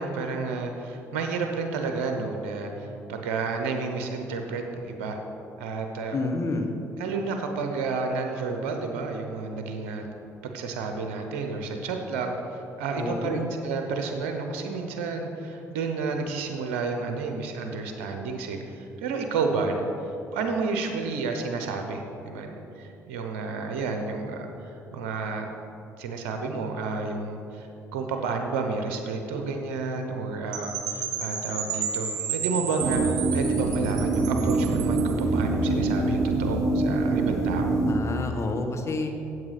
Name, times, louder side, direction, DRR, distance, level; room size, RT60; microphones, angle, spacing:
voice 1, 0.0-5.2 5.6-6.2 7.0-10.1 10.4-19.9 20.3-25.5 26.0-27.7 27.9-37.8, right 4 dB, 85° right, 4 dB, 0.8 m, -31 dB
voice 2, 6.1-6.7 13.0-13.5 37.9-39.1, left 3 dB, 40° left, 4 dB, 1.2 m, -29 dB
Percussion / Wind chime, 30.5-35.2, right 6 dB, 65° right, 1.9 m, -32 dB
sound 1, 32.8-37.9, right 3 dB, 50° right, 1.5 m, -25 dB
7.8 x 7.8 x 5.8 m, 2.8 s
hypercardioid pair, 55°, 7 cm